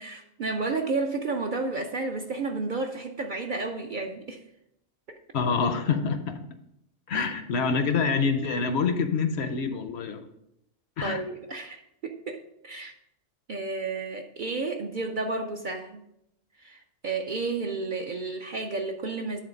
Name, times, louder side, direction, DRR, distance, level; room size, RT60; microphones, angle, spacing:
voice 1, 0.0-4.4 5.1-5.2 7.1-7.3 11.0-12.9 13.5-16.1 16.6-19.4, right 3 dB, 55° right, 4 dB, 0.6 m, -32 dB
voice 2, 5.3-6.4 7.1-10.2 11.0-11.2, left 5 dB, 65° left, 9 dB, 0.8 m, -26 dB
9.5 x 3.8 x 5.0 m, 0.80 s
omnidirectional pair, 1.3 m